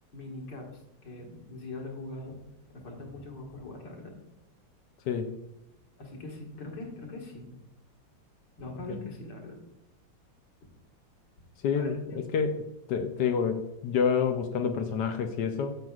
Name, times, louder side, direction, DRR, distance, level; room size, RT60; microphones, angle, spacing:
voice 1, 0.1-2.4 2.7-4.1 6.0-7.5 8.6-9.6 10.6-10.7 11.7-12.2, left 2 dB, 55° left, 1 dB, 2.1 m, -41 dB
voice 2, 5.1-5.4 11.6-12.6 12.9-15.7, left 6 dB, 70° left, 7 dB, 1.0 m, -28 dB
10.5 x 7.6 x 2.4 m, 0.92 s
omnidirectional pair, 2.4 m